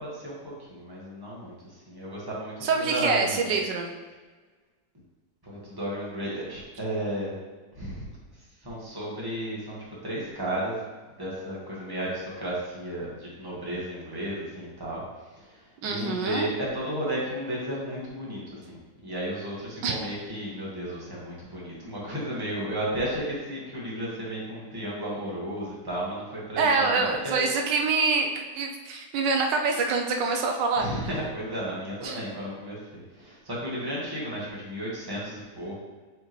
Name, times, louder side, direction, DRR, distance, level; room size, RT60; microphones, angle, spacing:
voice 1, 0.0-3.5 5.4-7.3 7.7-8.1 8.6-9.8 10.0-10.9 11.2-15.0 15.4-27.4 30.8-35.8, right 1 dB, 15° right, -6 dB, 1.5 m, -33 dB
voice 2, 2.6-3.9 15.8-16.5 19.8-19.9 26.6-30.9 32.0-32.2, right 4 dB, 85° right, 2 dB, 1.3 m, -25 dB
7.2 x 4.4 x 3.1 m, 1.3 s
omnidirectional pair, 1.9 m